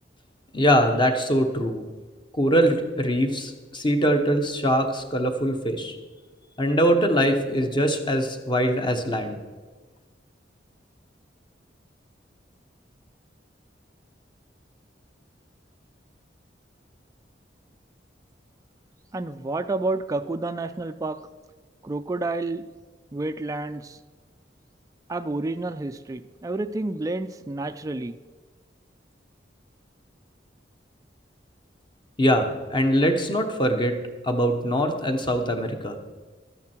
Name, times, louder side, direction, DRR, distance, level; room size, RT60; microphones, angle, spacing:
voice 1, 0.5-1.8 2.3-5.9 6.6-9.4 32.2-34.0 34.2-36.0, equal, 25° left, 6 dB, 1.1 m, -22 dB
voice 2, 19.1-21.2 21.8-22.6 23.1-24.0 25.1-28.2, right 2 dB, 20° right, 9 dB, 0.3 m, -29 dB
12.5 x 9.6 x 4.5 m, 1.3 s
head